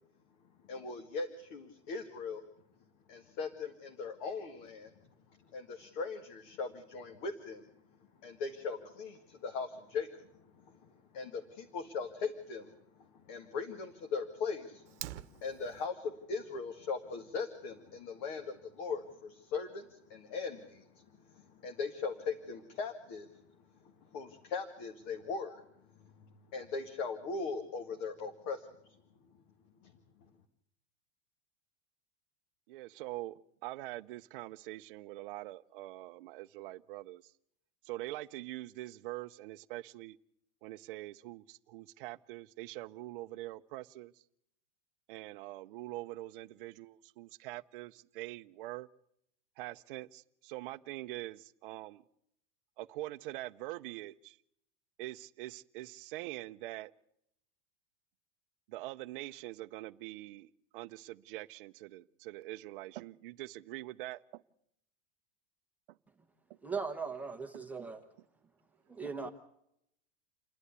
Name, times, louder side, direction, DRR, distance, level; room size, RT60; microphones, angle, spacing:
voice 1, 0.7-2.4 3.1-4.9 5.5-7.7 8.2-10.2 10.6-10.7 11.1-15.0 15.3-23.3 24.1-25.6 26.5-29.0 29.8-29.9, left 5 dB, 40° left, 1.8 m, -39 dB
Fire, 14.9-15.9, right 14 dB, 80° right, 1.0 m, -45 dB
voice 2, 32.7-37.3 37.9-40.2 40.6-44.1 45.1-48.9 49.6-52.0 52.8-54.4 55.0-56.9 58.7-64.4 66.5-66.6, right 17 dB, 50° right, 0.7 m, -44 dB
voice 3, 66.6-68.0 68.9-69.3, right 5 dB, 5° right, 1.0 m, -38 dB
28.5 x 11.5 x 8.2 m
supercardioid pair, 175°, 35 cm